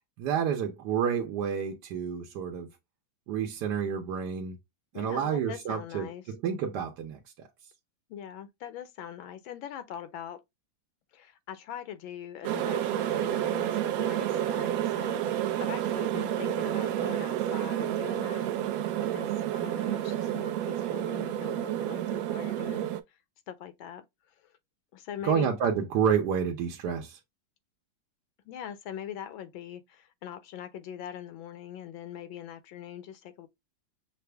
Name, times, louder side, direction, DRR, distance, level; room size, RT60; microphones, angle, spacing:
voice 1, 0.2-2.7 3.3-4.6 4.9-7.5 25.2-27.2, right 7 dB, 65° right, 1.2 m, -29 dB
voice 2, 4.9-6.2 8.1-10.4 11.1-23.2 23.5-24.5 24.9-25.5 28.4-33.5, left 10 dB, 85° left, 1.5 m, -42 dB
sound 1, 12.4-23.0, right 11 dB, 90° right, 0.7 m, -30 dB
5.8 x 2.0 x 3.2 m
omnidirectional pair, 2.1 m